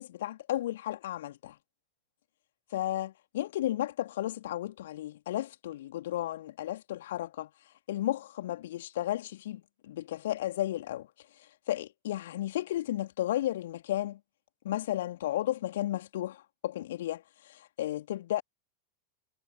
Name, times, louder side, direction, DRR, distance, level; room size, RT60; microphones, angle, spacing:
voice 1, 0.0-1.6 2.7-7.5 7.9-11.1 11.7-14.2 14.6-18.4, left 13 dB, 55° left, 3.0 m, -33 dB
figure-of-eight pair, 90°, 0 cm